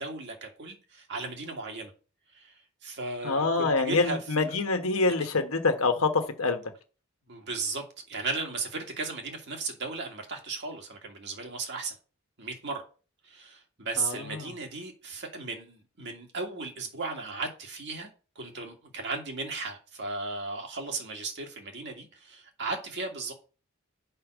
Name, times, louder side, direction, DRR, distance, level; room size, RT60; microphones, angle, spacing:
voice 1, 0.0-1.9 2.3-2.5 2.8-4.2 7.3-12.0 12.4-12.8 13.2-18.1 18.4-23.3, right 3 dB, 55° right, 1.8 m, -36 dB
voice 2, 3.2-6.6 14.0-14.5, left 3 dB, 75° left, 1.3 m, -26 dB
5.5 x 5.3 x 6.2 m
head